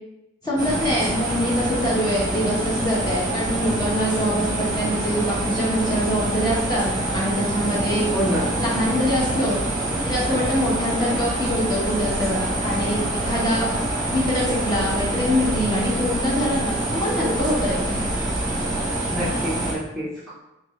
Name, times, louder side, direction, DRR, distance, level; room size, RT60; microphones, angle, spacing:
voice 1, 0.4-8.1 8.6-9.6 10.0-13.7 14.1-18.0, equal, 20° left, -5 dB, 1.1 m, -24 dB
sound 1, 0.6-19.7, right 1 dB, 20° right, 1.0 m, -25 dB
voice 2, 8.1-8.5 19.1-20.3, equal, 5° left, -10 dB, 0.8 m, -27 dB
3.7 x 3.1 x 3.7 m, 0.92 s
head